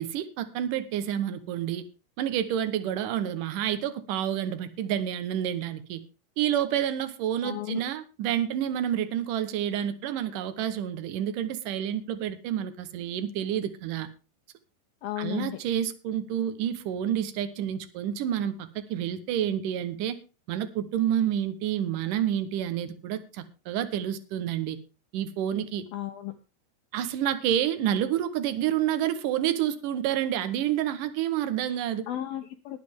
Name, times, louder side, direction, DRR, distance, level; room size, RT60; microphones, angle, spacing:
voice 1, 0.0-1.8 2.2-6.0 6.4-14.1 15.2-20.2 20.5-24.8 25.1-25.9 26.9-32.1, right 10 dB, 75° right, 10 dB, 1.9 m, -29 dB
voice 2, 7.4-7.8 15.0-15.6 25.9-26.3 32.1-32.8, left 14 dB, 80° left, 7 dB, 2.1 m, -34 dB
19.5 x 7.6 x 3.6 m, 0.31 s
omnidirectional pair, 5.1 m